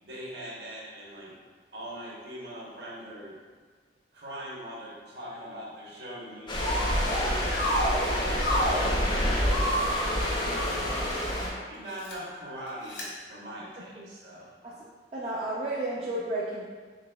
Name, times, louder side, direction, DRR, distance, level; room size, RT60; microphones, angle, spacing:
voice 1, 0.0-1.4 1.7-3.4 4.1-9.6 10.4-14.5, equal, 60° right, -5 dB, 0.9 m, -41 dB
sound 1, 6.5-11.5, equal, 25° left, 0.5 m, -28 dB
sound 2, 6.6-7.2 7.5-9.0 9.4-11.3 11.9-12.1 12.9-13.0, equal, 70° left, 0.9 m, -30 dB
voice 2, 11.3-11.6 14.0-14.1 14.6-14.8 15.1-16.6, right 1 dB, 35° right, -7 dB, 0.4 m, -33 dB
4.0 x 3.5 x 2.2 m, 1.5 s
head